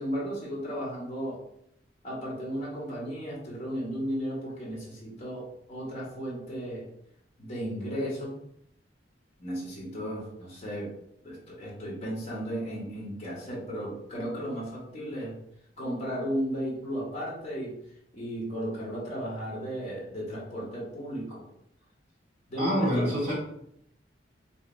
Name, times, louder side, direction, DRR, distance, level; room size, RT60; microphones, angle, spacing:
voice 1, 0.0-1.4 2.0-6.8 7.4-8.4 9.4-10.9 11.2-15.3 15.8-17.8 18.1-21.4 22.5-23.1, equal, 35° left, -6 dB, 1.2 m, -34 dB
voice 2, 22.6-23.3, equal, 50° right, -8 dB, 1.3 m, -26 dB
2.8 x 2.7 x 3.9 m, 0.73 s
head